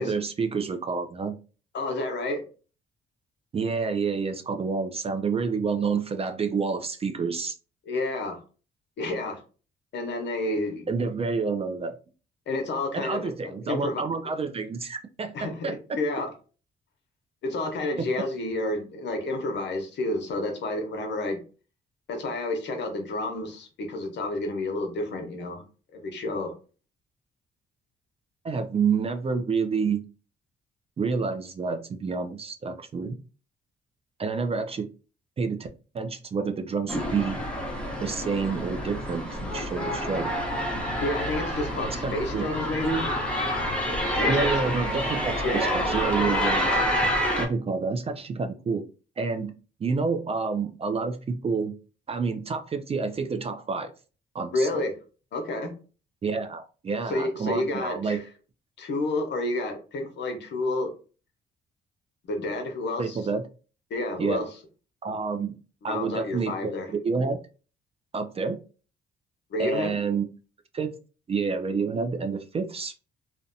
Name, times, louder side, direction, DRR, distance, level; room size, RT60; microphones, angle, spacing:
voice 1, 0.0-1.4 3.5-7.5 10.9-12.0 12.9-15.8 18.0-18.1 28.4-30.0 31.0-33.2 34.2-34.9 35.4-35.7 35.9-37.4 38.0-40.3 41.9-42.5 44.3-46.7 47.4-48.8 49.2-49.5 49.8-51.8 52.1-53.9 54.3-54.7 56.2-58.2 63.0-63.4 64.2-64.5 65.0-65.5 65.8-66.7 67.0-67.4 68.1-68.6 69.6-70.3 70.7-70.9 71.3-73.0, right 5 dB, 30° right, 7 dB, 0.3 m, -28 dB
voice 2, 1.7-2.4 7.9-8.4 9.0-9.4 9.9-10.9 12.5-13.3 13.6-14.0 15.3-16.3 17.4-21.4 22.1-25.6 25.9-26.5 41.0-43.1 44.2-44.5 45.4-45.7 54.5-54.9 55.3-55.7 57.1-58.2 58.8-60.9 62.2-63.2 63.9-64.5 65.8-66.9 69.5-70.0, left 2 dB, 60° left, 4 dB, 0.8 m, -30 dB
sound 1, 36.9-47.5, equal, 5° left, 0.8 m, -28 dB
2.6 x 2.1 x 2.6 m, 0.36 s
cardioid pair, 90°, 20 cm